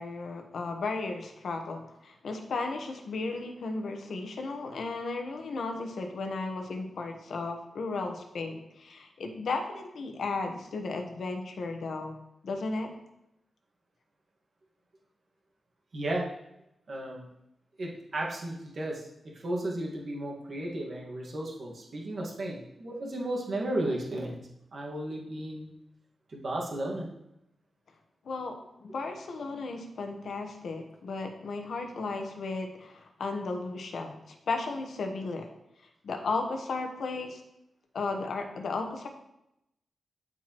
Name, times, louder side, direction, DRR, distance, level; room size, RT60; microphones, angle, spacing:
voice 1, 0.0-12.1 12.4-12.9 28.2-28.5 28.8-35.5 36.0-37.4 37.9-39.1, left 3 dB, 65° left, 4 dB, 1.1 m, -35 dB
voice 2, 15.9-16.3 16.9-17.3 17.8-24.4 24.7-25.7 26.3-27.1, right 1 dB, 45° right, -2 dB, 1.7 m, -34 dB
13.0 x 4.7 x 3.0 m, 0.84 s
wide cardioid pair, 175°, 0 cm